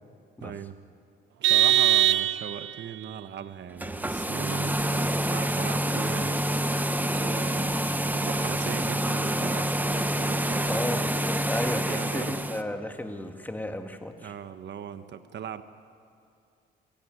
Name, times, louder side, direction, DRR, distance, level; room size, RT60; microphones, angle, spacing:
voice 1, 0.4-0.8 1.4-6.4 7.2-7.7 8.1-11.0 11.9-12.4 14.2-15.6, right 8 dB, 60° right, 10 dB, 1.5 m, -38 dB
Vehicle horn car horn honking, 1.4-2.8, right 12 dB, 80° right, 0.5 m, -21 dB
sound 1, 3.7-12.6, right 1 dB, 10° right, 1.2 m, -27 dB
voice 2, 10.7-14.3, left 1 dB, 10° left, 5 dB, 2.0 m, -34 dB
27.5 x 17.5 x 9.8 m, 2.5 s
cardioid pair, 90°, 20 cm